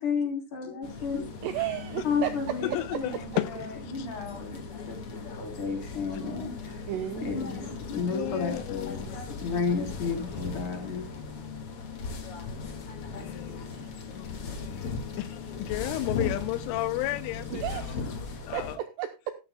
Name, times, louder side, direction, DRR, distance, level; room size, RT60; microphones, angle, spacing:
voice 1, 0.0-1.3 2.0-6.9 7.2-9.1 9.4-11.1, left 5 dB, 40° left, 4.4 m, -32 dB
sound 1, 0.8-18.8, left 4 dB, 65° left, 1.4 m, -38 dB
voice 2, 1.4-2.6 3.9-4.2 6.9-7.5 13.5-13.9 17.5-18.0 18.5-19.3, right 12 dB, 80° right, 2.5 m, -34 dB
voice 3, 2.6-3.5 4.0-4.1 8.1-9.4 13.1-13.7 14.1-17.9 18.5-18.8, left 16 dB, 80° left, 3.1 m, -33 dB
14.5 x 13.0 x 2.2 m
omnidirectional pair, 5.9 m